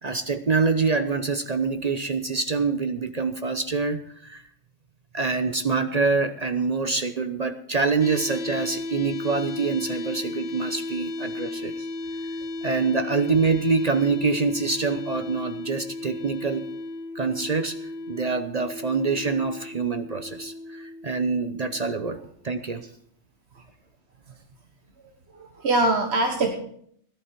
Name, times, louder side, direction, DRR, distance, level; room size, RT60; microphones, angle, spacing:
voice 1, 0.0-4.4 5.1-11.7 12.6-16.7 17.1-17.8 18.1-22.2 22.4-22.8, right 4 dB, 40° right, 9 dB, 0.7 m, -25 dB
sound 1, 8.0-22.0, left 2 dB, 55° left, 0.9 m, -35 dB
voice 2, 25.3-26.5, right 2 dB, 55° right, 2 dB, 1.6 m, -24 dB
17.0 x 11.5 x 4.5 m, 0.66 s
omnidirectional pair, 1.3 m